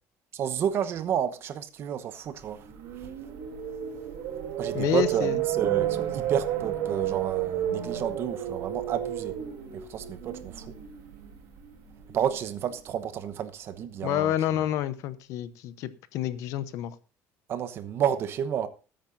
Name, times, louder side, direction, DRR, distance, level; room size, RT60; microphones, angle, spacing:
voice 1, 0.3-2.6 4.6-9.3 9.9-10.7 12.1-14.3 17.5-18.7, right 9 dB, 45° right, 1.0 m, -30 dB
sound 1, 2.5-12.6, right 11 dB, 85° right, 3.3 m, -32 dB
voice 2, 4.7-5.4 14.0-16.9, left 12 dB, 65° left, 0.9 m, -29 dB
19.5 x 8.9 x 2.7 m
cardioid pair, 155°, 6 cm